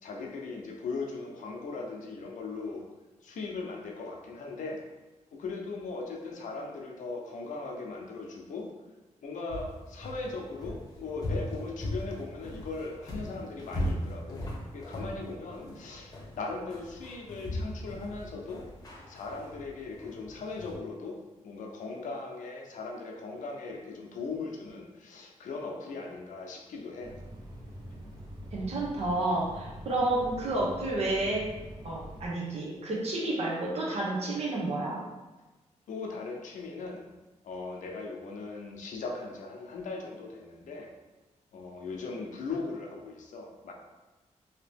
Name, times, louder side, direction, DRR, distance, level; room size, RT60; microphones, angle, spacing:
voice 1, 0.0-2.8 3.2-4.8 5.4-8.7 9.2-18.6 19.1-21.2 21.4-27.1 35.9-37.0 37.4-40.9 41.5-43.7, left 3 dB, 85° left, 0 dB, 0.6 m, -39 dB
sound 1, 9.5-20.7, left 1 dB, 30° left, 0.9 m, -39 dB
sound 2, 27.0-32.3, equal, 30° right, 0.7 m, -45 dB
voice 2, 28.5-31.4 31.8-35.0, right 2 dB, 55° right, -4 dB, 0.8 m, -30 dB
2.9 x 2.8 x 3.4 m, 1.2 s
wide cardioid pair, 145°, 13 cm